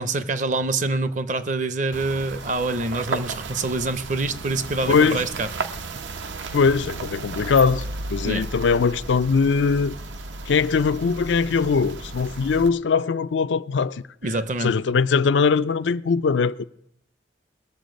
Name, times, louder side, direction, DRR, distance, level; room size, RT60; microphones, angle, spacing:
voice 1, 0.0-5.5 8.2-8.5 14.2-14.8, right 3 dB, 40° right, 0.6 m, -26 dB
sound 1, 1.9-12.7, right 3 dB, 85° right, 0.8 m, -34 dB
voice 2, 4.9-5.2 6.5-10.0 10.5-14.0 14.6-16.6, left 5 dB, 80° left, 0.4 m, -21 dB
20.0 x 7.1 x 5.1 m
head